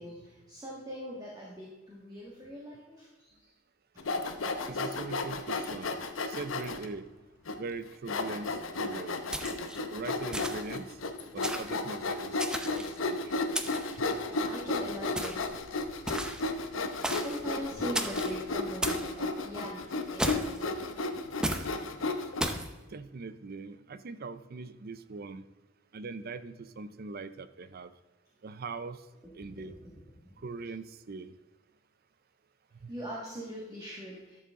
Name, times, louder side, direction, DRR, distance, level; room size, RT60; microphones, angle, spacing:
voice 1, 0.0-3.5 13.8-15.5 16.9-21.3 22.6-22.7 30.2-30.3 32.9-34.4, equal, 20° right, -5 dB, 1.8 m, -42 dB
Sawing, 4.0-6.9 7.5-7.6 8.1-22.4, left 3 dB, 85° left, 0.9 m, -33 dB
voice 2, 4.7-5.9 6.3-7.1 7.6-9.1 9.9-11.0 11.3-12.4 12.7-13.4 14.0-14.1 22.9-25.4 25.9-27.9 28.4-29.0 29.3-29.7 30.4-31.3 32.8-32.9, right 4 dB, 50° right, 13 dB, 0.5 m, -41 dB
sound 1, 9.3-9.8 10.3-10.8 11.4-11.8 12.4-13.0 13.5-14.0 15.2-15.5 16.1-16.5 17.0-17.4 17.9-18.3 18.8-19.1 20.2-20.6 21.4-21.7 22.4-22.7, right 1 dB, 5° right, 0.6 m, -34 dB
12.0 x 6.8 x 3.7 m, 1.2 s
head